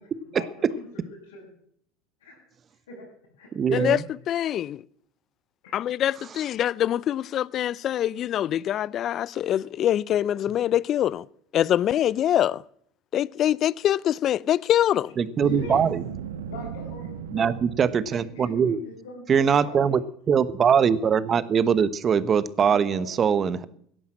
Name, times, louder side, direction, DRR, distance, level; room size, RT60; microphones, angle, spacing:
voice 1, 0.2-0.9 1.2-1.5 2.2-2.4 2.9-3.1 3.4-3.9 5.6-5.9 15.3-15.9 16.5-17.5 18.1-19.8 22.6-23.2 23.6-23.7, left 2 dB, 85° left, 6.9 m, -40 dB
voice 2, 3.5-4.0 15.2-16.0 17.3-18.8 19.3-20.0 20.3-23.6, right 7 dB, 35° right, 1.1 m, -22 dB
voice 3, 4.3-4.8 5.7-11.2 11.5-12.6 13.1-15.1, left 11 dB, 45° left, 0.5 m, -24 dB
Boom, 15.3-18.5, right 7 dB, 90° right, 1.2 m, -37 dB
16.5 x 11.0 x 7.6 m
hypercardioid pair, 85°, 0 cm